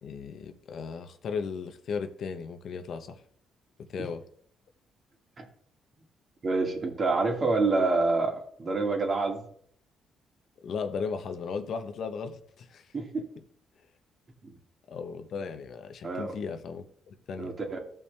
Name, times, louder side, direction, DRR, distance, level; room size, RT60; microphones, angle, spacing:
voice 1, 0.0-3.2 3.9-4.2 10.6-12.9 14.9-17.5, left 5 dB, 65° left, 8 dB, 0.9 m, -36 dB
voice 2, 6.4-9.4 12.9-13.2 14.4-14.6 16.0-16.3 17.4-17.8, right 3 dB, 40° right, 2 dB, 2.3 m, -27 dB
15.0 x 5.5 x 3.4 m, 0.62 s
cardioid pair, 90°, 0 cm